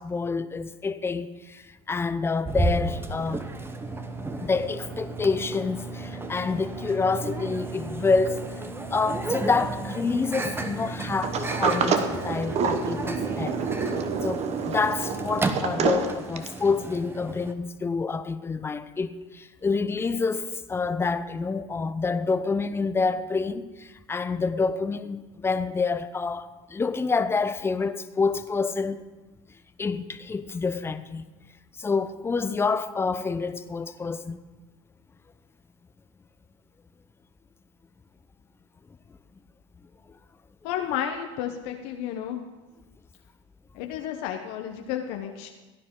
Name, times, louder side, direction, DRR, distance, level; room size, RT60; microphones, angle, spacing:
voice 1, 0.0-3.4 4.4-8.6 8.9-13.6 14.2-29.0 29.8-31.2 31.8-34.4, left 4 dB, 15° left, 0.6 m, -27 dB
Microwave oven, 2.5-17.5, right 2 dB, 15° right, 0.9 m, -33 dB
Sliding door, 11.2-16.7, right 6 dB, 40° right, 1.1 m, -28 dB
voice 2, 40.6-42.4 43.7-45.5, left 10 dB, 65° left, 0.9 m, -32 dB
16.0 x 9.9 x 3.7 m
hypercardioid pair, 100°, 16 cm